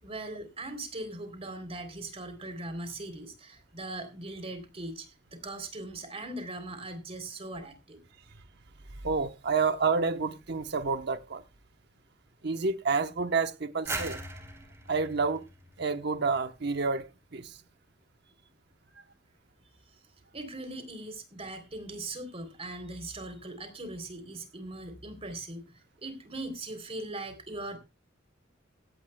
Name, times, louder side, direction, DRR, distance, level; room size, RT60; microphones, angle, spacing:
voice 1, 0.0-8.0 20.3-27.8, right 2 dB, 30° right, 3.3 m, -40 dB
voice 2, 9.0-11.4 12.4-14.2 14.9-15.5 15.8-17.6, right 4 dB, 60° right, 1.0 m, -29 dB
sound 1, 13.9-16.6, right 2 dB, 15° right, 3.3 m, -40 dB
16.5 x 16.0 x 2.3 m
head